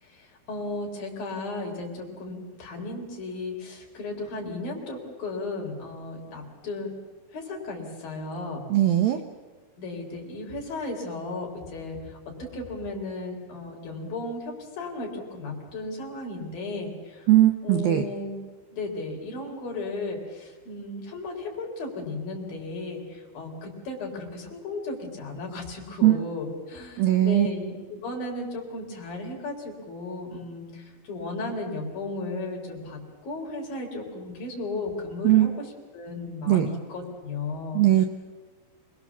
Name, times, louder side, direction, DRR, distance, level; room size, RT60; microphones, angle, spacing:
voice 1, 0.0-6.9 7.3-8.6 9.8-17.3 17.6-18.4 18.7-35.5 35.9-37.8, left 2 dB, 50° left, 0 dB, 5.3 m, -35 dB
voice 2, 8.7-9.2 17.3-18.1 26.0-26.2 27.0-27.5 35.2-35.5 36.5-36.7 37.7-38.0, right 13 dB, 75° right, 6 dB, 2.2 m, -19 dB
27.0 x 21.0 x 7.2 m, 1.3 s
omnidirectional pair, 5.3 m